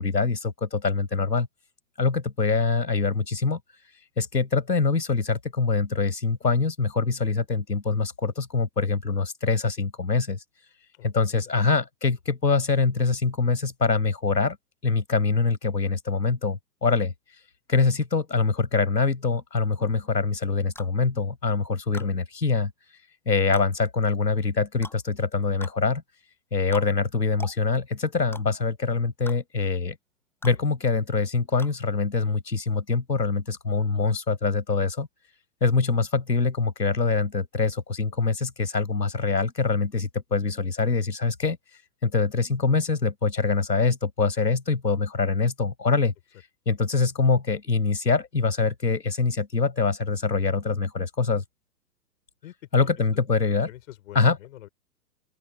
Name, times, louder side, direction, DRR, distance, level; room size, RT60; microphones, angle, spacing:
voice 1, 0.0-1.5 2.0-3.6 4.2-10.4 11.0-14.6 14.8-17.1 17.7-22.7 23.3-26.0 26.5-29.9 30.4-35.1 35.6-41.6 42.0-46.1 46.6-51.4 52.7-53.7 54.1-54.4, left 4 dB, 80° left, 6.7 m, -24 dB
voice 2, 10.9-11.5 22.0-22.1 52.4-52.9 53.7-54.7, left 14 dB, 50° left, 5.5 m, -46 dB
sound 1, 20.8-20.9 21.9-22.1 23.5-23.7 24.8-25.0 25.6-25.8 26.7-26.9 27.4-27.6 28.3-28.4 29.3-29.4 30.4-30.6 31.6-31.8, left 2 dB, 5° left, 6.3 m, -41 dB
open air
figure-of-eight pair, 115°, 49 cm